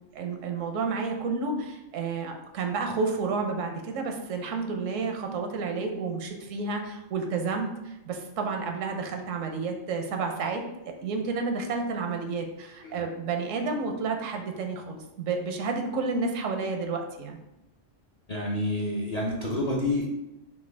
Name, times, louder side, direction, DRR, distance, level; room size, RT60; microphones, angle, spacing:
voice 1, 0.1-17.4, right 4 dB, 80° right, 4 dB, 1.0 m, -31 dB
voice 2, 18.3-20.0, left 1 dB, 50° left, -3 dB, 0.5 m, -28 dB
5.7 x 2.3 x 3.3 m, 0.91 s
omnidirectional pair, 1.3 m